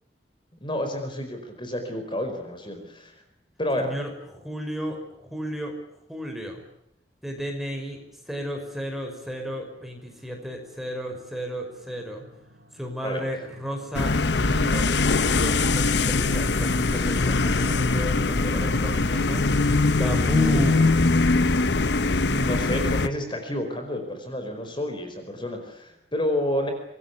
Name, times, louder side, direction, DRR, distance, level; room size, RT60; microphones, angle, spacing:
voice 1, 0.6-3.1 3.6-3.9 13.0-13.3 22.1-26.7, left 1 dB, 30° left, 6 dB, 5.0 m, -30 dB
voice 2, 3.8-5.7 6.1-6.6 7.2-8.0 8.3-12.2 12.7-14.1 14.4-19.4 20.0-21.0, equal, ahead, 3 dB, 5.5 m, -32 dB
sound 1, 7.9-20.9, equal, 60° right, 7.9 m, -45 dB
sound 2, 13.9-23.1, left 3 dB, 75° left, 1.0 m, -22 dB
26.0 x 21.5 x 8.4 m, 0.79 s
head